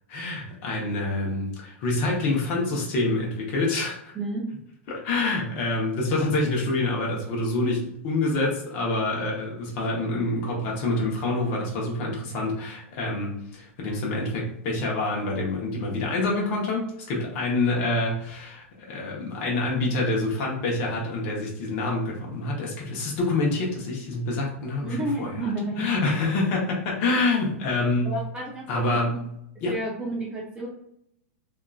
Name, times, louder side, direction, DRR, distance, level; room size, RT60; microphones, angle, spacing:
voice 1, 0.1-4.1 4.9-25.5 25.8-28.2 28.7-29.3 29.6-29.7, left 2 dB, 50° left, -2 dB, 0.9 m, -27 dB
voice 2, 24.8-25.9 28.0-29.2 29.6-30.7, right 1 dB, 10° right, -3 dB, 0.5 m, -31 dB
2.8 x 2.4 x 2.3 m, 0.74 s
hypercardioid pair, 130°, 8 cm